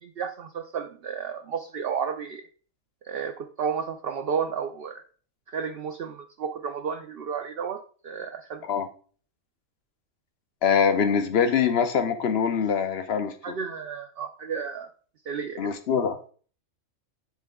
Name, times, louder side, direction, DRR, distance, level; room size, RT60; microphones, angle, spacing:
voice 1, 0.0-2.5 3.0-5.0 5.5-8.6 13.4-14.9 15.3-15.7, right 6 dB, 60° right, 6 dB, 0.7 m, -32 dB
voice 2, 10.6-13.5 15.6-16.2, left 7 dB, 55° left, 10 dB, 0.9 m, -24 dB
9.2 x 3.9 x 3.5 m, 0.42 s
omnidirectional pair, 1.4 m